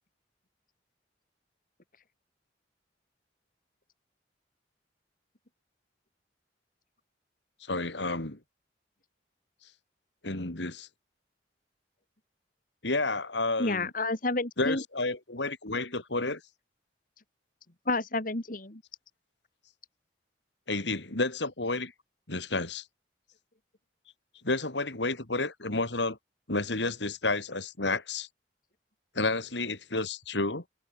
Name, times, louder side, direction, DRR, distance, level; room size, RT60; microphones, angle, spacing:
voice 1, 7.7-8.4 10.2-10.9 12.8-13.9 14.6-16.4 20.7-21.9 22.3-22.8 24.4-26.2 26.5-28.3 29.1-30.6, left 2 dB, 75° left, 3.4 m, -30 dB
voice 2, 13.6-14.8 17.9-18.8, left 2 dB, 50° left, 2.7 m, -30 dB
head